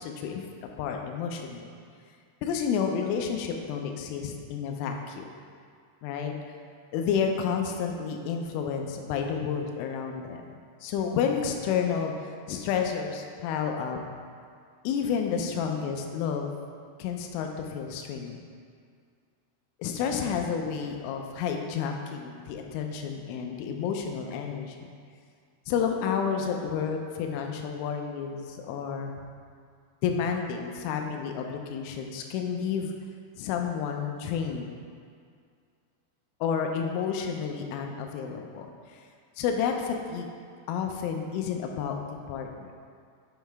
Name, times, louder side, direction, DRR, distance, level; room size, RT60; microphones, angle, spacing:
voice 1, 0.0-1.7 2.4-5.3 6.0-6.3 6.9-10.4 10.8-12.1 12.5-14.0 14.8-16.5 17.0-18.4 19.8-24.9 25.7-29.1 30.0-32.9 33.4-34.7 36.4-38.7 38.9-39.0 39.4-40.3 40.7-42.7, left 7 dB, 85° left, 3 dB, 3.1 m, -30 dB
7.4 x 6.4 x 3.4 m, 2.2 s
omnidirectional pair, 5.7 m